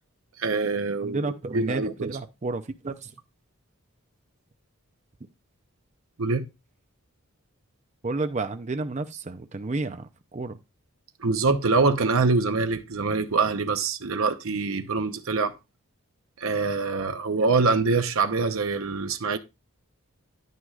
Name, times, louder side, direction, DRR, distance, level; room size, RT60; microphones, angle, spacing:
voice 1, 0.4-2.2 6.2-6.4 11.2-15.5 16.4-19.4, right 4 dB, 70° right, 0.7 m, -24 dB
voice 2, 1.0-3.1 8.0-10.6, right 3 dB, 30° right, 0.5 m, -31 dB
9.7 x 9.3 x 2.4 m
head